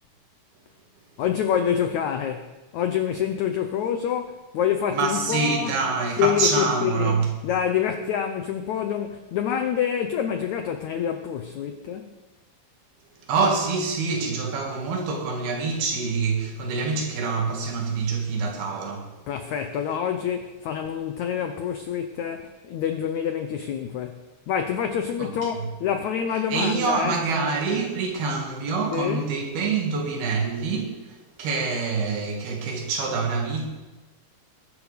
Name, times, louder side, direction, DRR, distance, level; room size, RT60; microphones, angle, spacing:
voice 1, 1.2-5.8 6.2-12.1 19.3-27.3 28.9-29.3, left 8 dB, 80° left, 1.6 m, -27 dB
voice 2, 4.9-7.3 13.3-19.1 25.2-25.3 26.5-31.1 31.4-33.7, right 4 dB, 75° right, 4.2 m, -26 dB
21.0 x 11.5 x 5.2 m
omnidirectional pair, 4.4 m